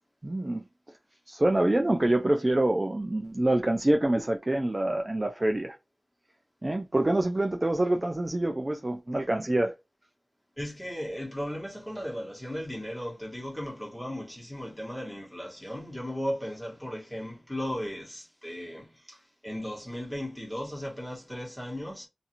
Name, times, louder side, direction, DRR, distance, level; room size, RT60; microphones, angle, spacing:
voice 1, 0.2-0.6 1.3-5.8 6.6-9.8, right 1 dB, 30° right, 0.3 m, -26 dB
voice 2, 10.6-22.1, equal, 5° left, 1.3 m, -36 dB
2.5 x 2.4 x 2.8 m
wide cardioid pair, 70°, 0 cm